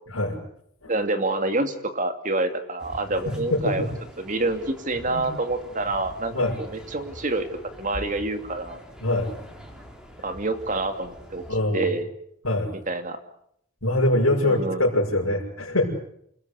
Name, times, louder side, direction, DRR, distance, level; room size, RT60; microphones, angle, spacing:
voice 1, 0.9-3.9 4.2-7.5 7.8-8.8 10.2-11.4 11.7-12.1 12.9-13.2 14.4-14.9, right 2 dB, 35° right, 8 dB, 2.6 m, -27 dB
sound 1, 2.8-11.5, equal, 5° right, 3.8 m, -44 dB
voice 2, 3.1-3.9 5.1-5.3 6.3-6.6 9.0-9.3 11.5-11.9 12.4-12.7 13.8-15.9, left 1 dB, 80° left, -5 dB, 6.3 m, -24 dB
28.5 x 19.5 x 8.3 m, 0.73 s
head